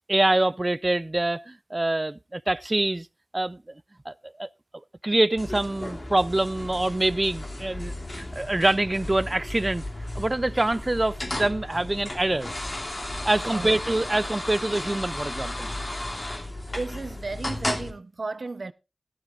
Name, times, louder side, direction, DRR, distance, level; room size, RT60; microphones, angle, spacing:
voice 1, 0.1-3.1 3.3-3.6 4.1-4.5 5.0-9.8 10.1-12.5 13.2-15.7, right 2 dB, 35° right, 0.5 m, -25 dB
sound 1, 5.4-17.9, left 1 dB, 40° left, 2.6 m, -34 dB
voice 2, 16.7-18.7, right 3 dB, 65° right, 0.8 m, -34 dB
15.5 x 12.0 x 2.5 m
cardioid pair, 45°, 0 cm